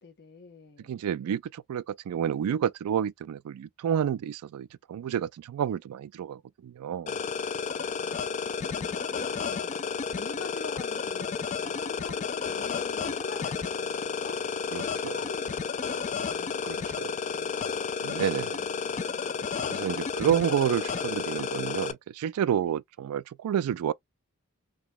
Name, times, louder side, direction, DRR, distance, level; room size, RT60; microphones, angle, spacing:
voice 1, 0.0-0.9 7.7-14.5 14.9-19.4 22.6-22.8, left 4 dB, 50° left, 0.9 m, -47 dB
voice 2, 0.8-7.2 14.7-15.2 16.6-17.1 18.0-18.6 19.7-23.9, right 9 dB, 80° right, 0.3 m, -30 dB
sound 1, 7.1-21.9, left 6 dB, 35° left, 0.4 m, -32 dB
3.9 x 2.8 x 2.2 m
head